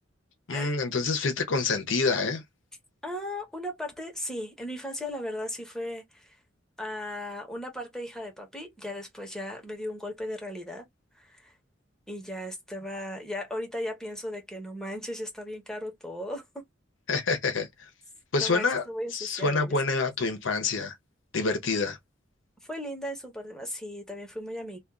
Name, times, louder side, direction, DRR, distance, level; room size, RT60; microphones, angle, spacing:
voice 1, 0.5-2.4 17.1-17.7 18.3-18.9 19.1-21.0 21.3-22.0, left 4 dB, 80° left, 0.8 m, -27 dB
voice 2, 3.0-6.4 6.8-10.8 11.1-11.5 12.1-16.6 18.4-20.0 22.6-24.8, left 1 dB, 5° left, 1.0 m, -36 dB
2.5 x 2.4 x 3.5 m
head